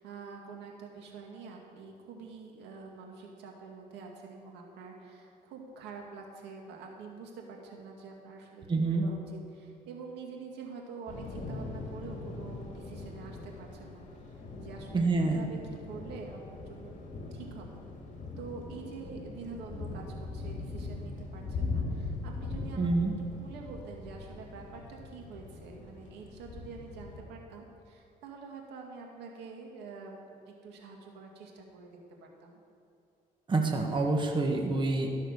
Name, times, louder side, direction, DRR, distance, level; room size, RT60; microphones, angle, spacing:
voice 1, 0.0-17.0 17.3-17.7 18.4-23.1 23.4-30.2 30.5-32.6, right 4 dB, 85° right, 0 dB, 2.1 m, -46 dB
voice 2, 8.7-9.0 14.9-15.4 22.8-23.1 33.5-35.1, right 3 dB, 25° right, 2 dB, 1.3 m, -27 dB
Thunder / Rain, 11.1-27.2, left 3 dB, 45° left, 2.3 m, -40 dB
13.0 x 6.6 x 6.5 m, 2.6 s
cardioid pair, 110°, 17 cm